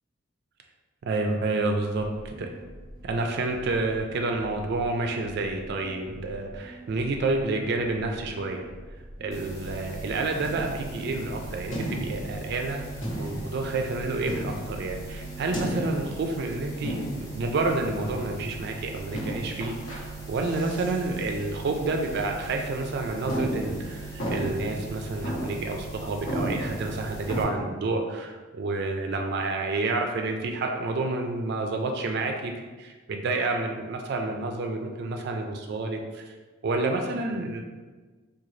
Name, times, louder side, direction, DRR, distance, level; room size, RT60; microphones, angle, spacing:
voice 1, 1.1-2.5 3.0-8.7 9.2-12.8 13.2-17.0 17.3-32.5 32.8-36.2 36.6-37.6, right 3 dB, 55° right, 3 dB, 0.3 m, -29 dB
sound 1, 1.9-15.6, equal, 20° right, 0.7 m, -46 dB
sound 2, 9.3-27.4, right 3 dB, 15° left, 0.7 m, -40 dB
sound 3, 10.4-11.0 11.7-12.3 13.0-13.6 14.3-14.8 15.5-16.2 16.8-17.4 18.0-18.4 19.1-20.0 20.4-21.0 21.3-21.4 22.0-22.2 22.7-22.8 23.3-24.8 25.2-25.7 26.0-26.1 26.3-27.6, equal, 75° left, 1.0 m, -33 dB
3.7 x 2.3 x 3.1 m, 1.3 s
head